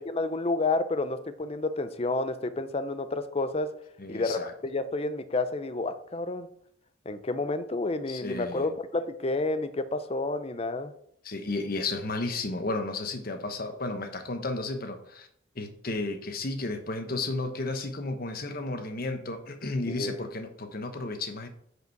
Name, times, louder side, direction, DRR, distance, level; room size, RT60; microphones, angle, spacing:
voice 1, 0.0-3.8 4.1-6.5 7.1-10.9 19.9-20.2, left 2 dB, 30° left, 11 dB, 0.5 m, -30 dB
voice 2, 4.0-4.5 8.1-8.7 11.2-15.3 15.5-21.5, left 2 dB, 45° left, 7 dB, 1.0 m, -33 dB
8.2 x 4.9 x 4.6 m, 0.68 s
head